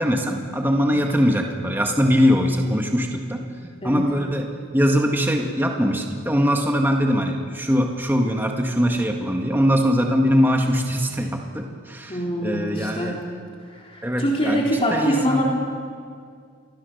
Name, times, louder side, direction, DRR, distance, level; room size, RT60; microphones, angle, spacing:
voice 1, 0.0-13.2 14.0-15.4, equal, 10° right, 2 dB, 1.8 m, -22 dB
voice 2, 12.1-13.1 13.7-15.4, equal, 30° left, -3 dB, 3.7 m, -24 dB
28.0 x 21.5 x 6.8 m, 2.1 s
head